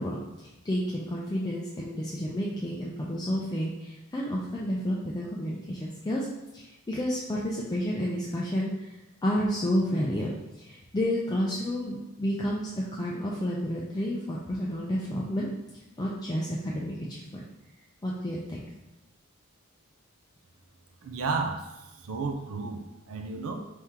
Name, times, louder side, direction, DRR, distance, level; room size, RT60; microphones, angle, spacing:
voice 1, 0.0-6.3 6.5-10.3 10.6-15.5 16.0-17.4 18.0-18.6, equal, 20° left, -5 dB, 0.4 m, -30 dB
voice 2, 21.0-23.6, right 4 dB, 75° right, 4 dB, 0.5 m, -33 dB
4.4 x 2.9 x 3.6 m, 0.97 s
head